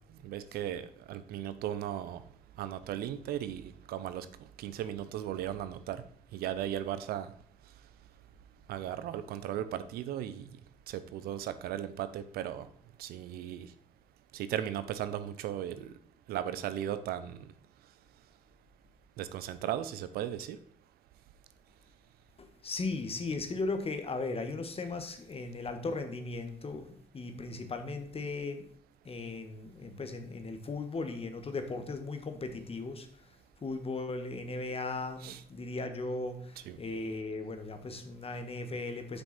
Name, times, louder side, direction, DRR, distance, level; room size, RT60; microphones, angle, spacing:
voice 1, 0.2-2.2 2.6-4.3 4.6-6.0 6.3-7.3 8.7-10.5 10.9-12.7 13.0-13.7 14.3-15.9 16.3-17.5 19.2-20.6 35.2-35.4 36.7-36.8, right 11 dB, 85° right, 13 dB, 0.6 m, -36 dB
voice 2, 22.4-28.7 29.0-33.1 33.6-39.2, left 3 dB, 40° left, 8 dB, 1.4 m, -37 dB
7.8 x 6.0 x 4.1 m, 0.63 s
cardioid pair, 70°, 15 cm